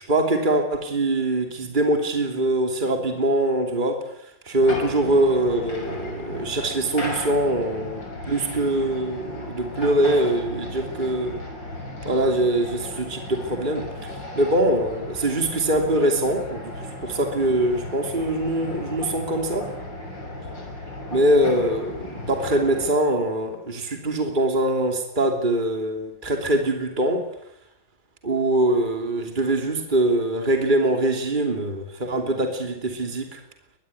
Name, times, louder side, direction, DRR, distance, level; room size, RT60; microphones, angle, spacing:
voice 1, 0.0-4.0 4.4-11.4 12.0-13.9 14.3-16.6 17.0-19.7 21.1-27.2 28.2-33.4, right 1 dB, 25° right, 5 dB, 3.1 m, -23 dB
sound 1, 4.6-22.9, left 1 dB, 75° left, 7.4 m, -35 dB
23.0 x 21.0 x 9.9 m, 0.79 s
omnidirectional pair, 2.0 m